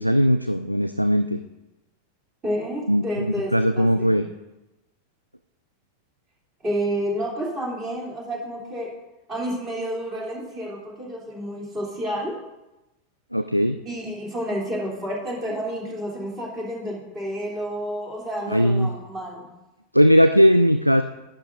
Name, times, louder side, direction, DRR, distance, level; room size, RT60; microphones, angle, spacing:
voice 1, 0.0-1.4 2.9-4.3 13.3-13.8 18.5-18.9 19.9-21.0, equal, 90° right, 9 dB, 0.3 m, -19 dB
voice 2, 2.4-4.1 6.6-8.9 9.3-12.4 13.8-19.5, equal, 25° right, -3 dB, 3.2 m, -30 dB
11.0 x 10.0 x 2.6 m, 0.98 s
figure-of-eight pair, 90°, 0 cm